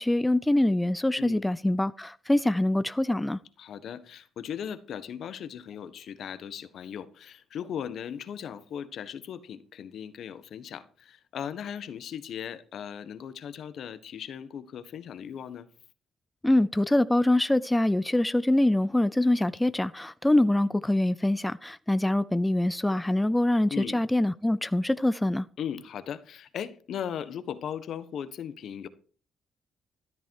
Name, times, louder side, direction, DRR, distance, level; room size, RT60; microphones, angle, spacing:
voice 1, 0.0-3.4 16.4-25.5, left 1 dB, 10° left, 0.5 m, -24 dB
voice 2, 1.2-1.5 3.6-15.7 23.7-24.0 25.6-28.9, left 8 dB, 65° left, 1.3 m, -38 dB
13.5 x 12.0 x 4.7 m
cardioid pair, 90°, 0 cm